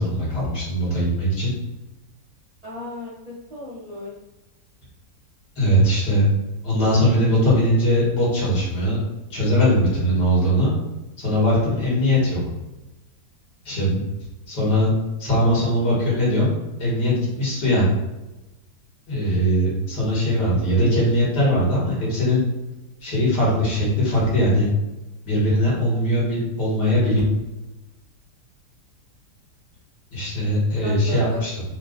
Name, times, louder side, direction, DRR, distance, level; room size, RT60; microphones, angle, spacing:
voice 1, 0.0-1.5 5.6-6.2 6.6-9.0 9.3-10.7 11.2-12.4 13.7-14.0 14.5-14.9 15.2-16.5 16.8-17.9 19.1-22.4 23.0-24.7 25.3-27.2 30.1-31.6, equal, 80° left, -6 dB, 2.2 m, -20 dB
voice 2, 2.6-4.1 30.8-31.4, left 1 dB, 35° right, -6 dB, 0.6 m, -35 dB
4.5 x 2.3 x 3.8 m, 1.0 s
omnidirectional pair, 1.8 m